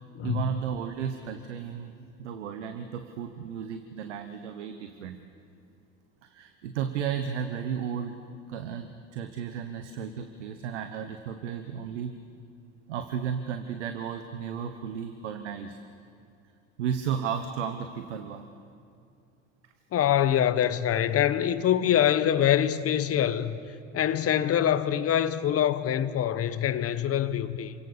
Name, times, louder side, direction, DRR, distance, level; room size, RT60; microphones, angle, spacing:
voice 1, 0.2-1.9 2.2-5.2 6.2-8.2 8.5-12.1 12.9-15.8 16.8-18.5, right 8 dB, 90° right, 1.1 m, -34 dB
voice 2, 19.9-23.6 23.9-27.7, left 10 dB, 40° left, 1.2 m, -24 dB
27.5 x 17.0 x 6.8 m
hypercardioid pair, 80°, 34 cm